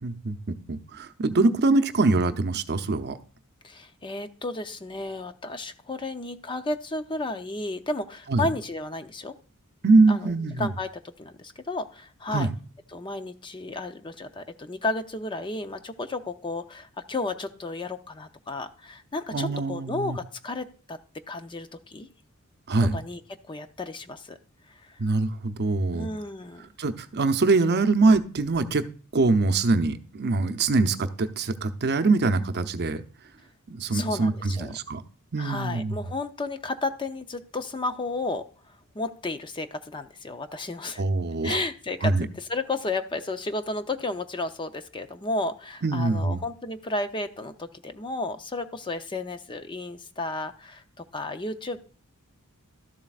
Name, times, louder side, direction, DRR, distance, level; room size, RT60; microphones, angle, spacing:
voice 1, 0.0-3.2 8.3-8.5 9.8-10.7 12.3-12.5 19.3-20.2 22.7-23.0 25.0-26.1 26.8-28.8 29.1-33.0 33.7-35.0 35.3-36.0 41.0-41.6 42.0-42.3 45.8-46.4, right 3 dB, 50° right, 9 dB, 0.7 m, -23 dB
voice 2, 3.6-9.3 10.1-10.9 11.2-12.5 12.9-21.0 21.3-22.1 22.9-23.2 23.5-24.4 24.7-25.0 25.9-26.7 33.9-34.7 35.4-38.5 38.9-41.0 41.4-51.8, left 2 dB, 20° left, 9 dB, 0.5 m, -33 dB
13.0 x 7.4 x 2.4 m, 0.41 s
head